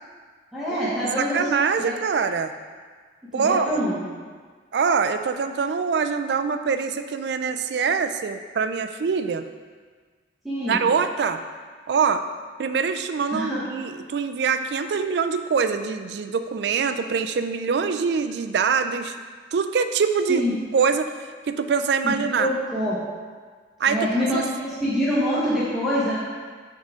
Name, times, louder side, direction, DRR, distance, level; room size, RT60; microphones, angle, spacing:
voice 1, 0.5-1.5 1.8-1.9 3.3-4.0 10.4-10.9 13.3-13.6 20.3-20.5 22.0-23.0 23.9-26.2, equal, ahead, -11 dB, 1.1 m, -25 dB
voice 2, 1.2-2.5 3.3-3.8 4.7-9.4 10.7-11.4 11.9-12.2 12.6-19.2 19.5-20.4 20.7-21.1 21.5-22.5 23.8-24.1 24.3-24.5, right 5 dB, 65° right, 9 dB, 0.4 m, -24 dB
8.1 x 3.7 x 3.7 m, 1.5 s
head